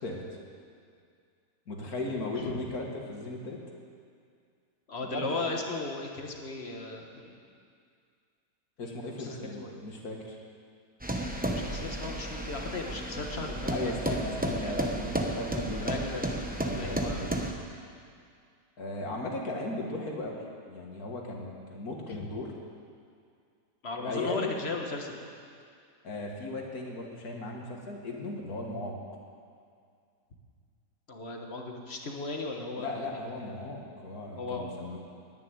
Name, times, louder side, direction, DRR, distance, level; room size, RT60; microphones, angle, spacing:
voice 1, 1.7-3.6 5.1-5.4 8.8-10.4 13.7-15.9 16.6-17.3 18.8-22.5 24.0-24.5 26.0-29.0 32.8-35.0, left 2 dB, 60° left, 0 dB, 2.2 m, -36 dB
voice 2, 4.9-7.5 8.8-9.7 11.6-14.2 14.6-14.7 15.8-16.4 16.7-17.2 22.1-22.3 23.8-25.2 31.1-33.0 33.4-33.7 34.4-35.0, left 3 dB, 40° left, 2 dB, 1.5 m, -37 dB
sound 1, 11.0-17.5, right 1 dB, 5° right, 0.7 m, -33 dB
10.5 x 10.5 x 9.5 m, 2.3 s
omnidirectional pair, 1.9 m